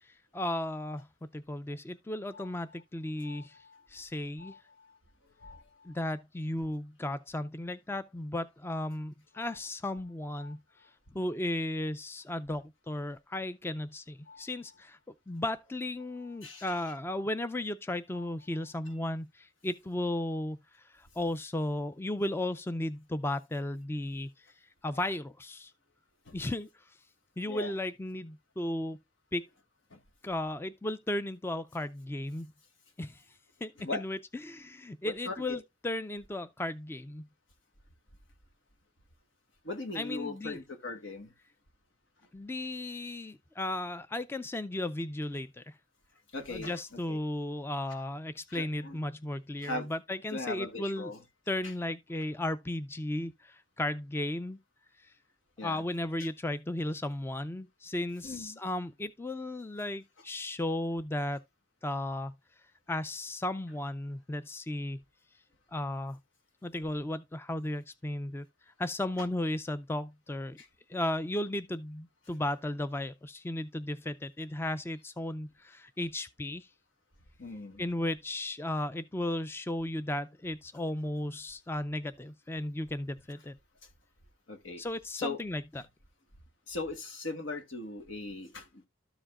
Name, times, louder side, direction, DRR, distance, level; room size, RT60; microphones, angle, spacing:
voice 1, 0.0-1.1 1.3-3.6 3.9-4.5 5.8-10.6 11.1-15.0 15.3-20.6 20.9-24.3 24.8-25.7 26.3-26.7 27.4-29.0 29.3-29.4 30.2-32.5 33.0-33.2 33.6-34.2 34.4-37.2 39.9-40.6 42.3-45.7 46.5-51.1 51.5-54.6 55.6-61.4 61.8-62.3 62.9-65.0 65.7-66.2 66.6-68.5 68.8-70.6 70.9-76.7 77.8-83.6 84.8-85.6, left 1 dB, 10° left, 0.3 m, -35 dB
voice 2, 3.2-3.9 4.4-5.0 5.2-6.0 9.4-9.6 10.4-10.5 14.3-14.5 16.4-16.7 18.1-18.3 26.2-26.4 27.5-27.7 29.9-30.0 33.8-34.0 35.0-35.6 39.6-41.3 46.3-47.2 48.5-49.0 49.6-49.9 50.3-51.2 51.6-51.7 55.6-55.8 56.2-56.3 58.2-58.6 70.6-70.7 77.4-77.8 84.5-84.8 85.2-85.4 86.7-88.8, left 3 dB, 80° left, 1.5 m, -40 dB
13.0 x 5.0 x 2.3 m
head